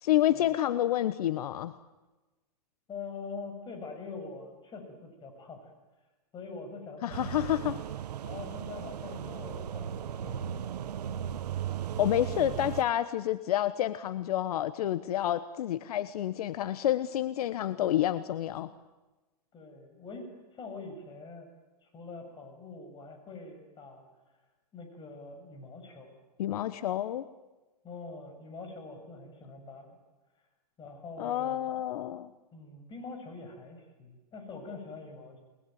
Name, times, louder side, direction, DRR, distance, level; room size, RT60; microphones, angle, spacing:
voice 1, 0.0-1.8 7.0-7.8 12.0-18.7 26.4-27.3 31.2-32.3, left 12 dB, 65° left, 14 dB, 1.2 m, -29 dB
voice 2, 2.9-5.7 6.3-7.7 8.2-10.5 19.5-21.5 21.8-24.1 24.7-26.1 27.8-30.0 30.8-31.8 32.5-35.4, left 4 dB, 25° left, 4 dB, 7.7 m, -44 dB
sound 1, 7.1-12.8, right 9 dB, 75° right, 1.2 m, -36 dB
29.0 x 21.0 x 9.4 m, 1.1 s
hypercardioid pair, 135°, 20 cm